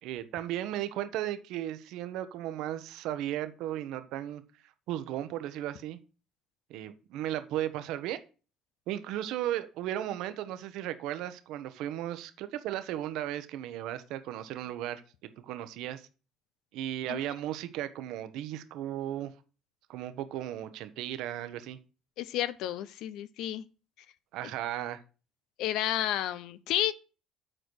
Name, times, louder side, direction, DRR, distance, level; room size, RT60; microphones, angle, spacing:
voice 1, 0.0-4.4 4.9-6.0 6.7-8.2 8.9-16.1 16.7-19.3 19.9-21.8 24.3-25.0, right 12 dB, 75° right, 0.9 m, -35 dB
voice 2, 22.2-23.7 25.6-26.9, left 13 dB, 75° left, 0.6 m, -31 dB
7.8 x 4.5 x 6.2 m
supercardioid pair, 80°, 0 cm